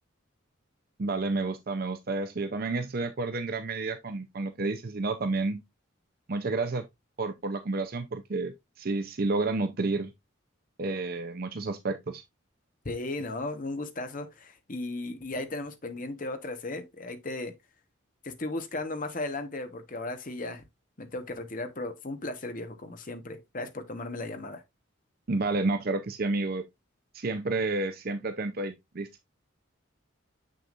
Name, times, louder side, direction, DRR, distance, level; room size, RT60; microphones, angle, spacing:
voice 1, 1.0-5.6 6.3-6.8 7.2-10.1 10.8-12.2 25.3-26.6 27.1-29.1, right 3 dB, 45° right, 0.6 m, -30 dB
voice 2, 12.8-17.5 18.2-20.6 21.0-24.6, left 2 dB, 40° left, 1.1 m, -36 dB
7.0 x 6.3 x 2.4 m
head